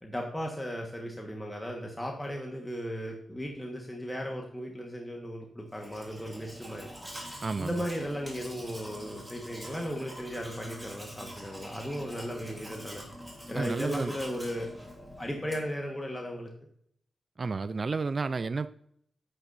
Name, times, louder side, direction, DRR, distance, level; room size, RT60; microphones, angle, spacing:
voice 1, 0.0-6.9 7.6-13.0 13.5-14.7 15.2-16.5, equal, 10° left, 1 dB, 1.4 m, -36 dB
Domestic sounds home sounds, 5.7-15.8, equal, 10° right, 3.2 m, -45 dB
voice 2, 7.4-7.8 13.5-14.1 17.4-18.7, right 4 dB, 45° right, 13 dB, 0.3 m, -31 dB
9.7 x 8.1 x 2.6 m, 0.68 s
cardioid pair, 70°, 0 cm